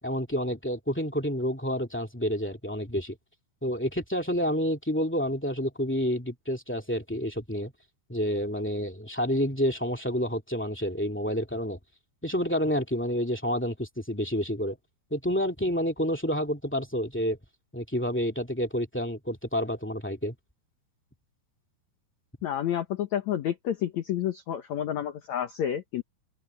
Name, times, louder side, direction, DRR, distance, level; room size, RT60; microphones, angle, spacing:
voice 1, 0.0-3.1 3.6-7.7 8.1-11.8 12.2-14.8 15.1-17.4 17.7-20.3, equal, 15° left, 0.4 m, -29 dB
voice 2, 22.4-26.0, left 10 dB, 80° left, 1.6 m, -30 dB
open air
omnidirectional pair, 4.9 m